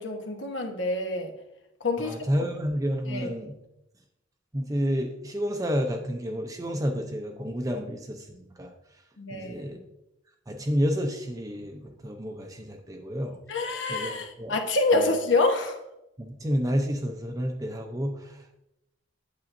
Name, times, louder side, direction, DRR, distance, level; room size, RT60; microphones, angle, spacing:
voice 1, 0.0-1.3 1.8-2.5 3.1-3.3 9.2-9.8 13.5-15.8, left 2 dB, 75° left, 4 dB, 1.0 m, -27 dB
voice 2, 2.0-3.5 4.5-8.7 9.3-9.8 10.5-13.4 13.9-14.1 14.4-14.5 14.9-15.1 16.2-18.6, equal, 20° right, 3 dB, 0.6 m, -30 dB
8.5 x 7.5 x 2.6 m, 0.88 s
head